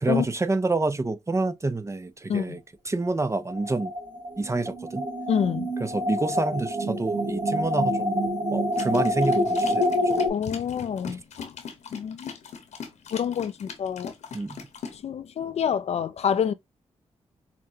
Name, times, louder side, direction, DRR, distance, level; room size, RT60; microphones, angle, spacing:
voice 1, 0.0-2.6 2.9-3.9 4.4-5.1 5.8-10.3 11.1-11.2 14.3-14.6, right 2 dB, 25° right, 0.6 m, -28 dB
sound 1, 3.5-10.3, equal, 50° right, 2.0 m, -27 dB
voice 2, 5.3-5.7 10.3-11.5 11.9-12.4 13.1-14.1 14.9-16.5, left 8 dB, 65° left, 0.4 m, -27 dB
sound 2, 8.7-15.0, left 6 dB, 80° left, 1.0 m, -40 dB
5.6 x 2.2 x 2.7 m
cardioid pair, 55°, 12 cm